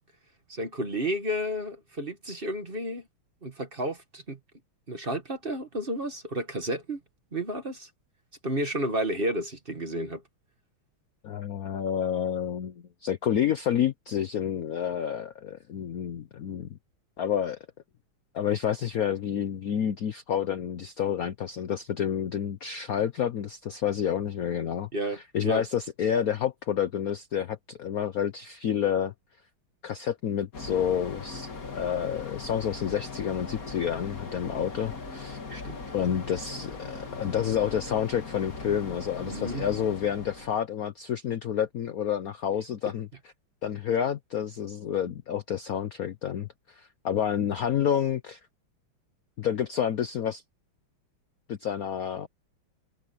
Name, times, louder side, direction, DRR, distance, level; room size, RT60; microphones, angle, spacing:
voice 1, 0.5-3.0 3.4-4.4 4.9-7.0 7.3-7.9 8.4-10.2 24.9-25.6 35.5-35.8 39.2-39.7, right 1 dB, 25° right, 2.0 m, -31 dB
voice 2, 11.2-16.8 17.2-17.6 18.3-29.1 29.8-35.4 35.9-43.3 43.6-48.4 49.4-50.4 51.5-52.3, left 9 dB, 60° left, 1.0 m, -29 dB
sound 1, 30.5-40.6, left 4 dB, 40° left, 2.8 m, -39 dB
omnidirectional pair, 2.3 m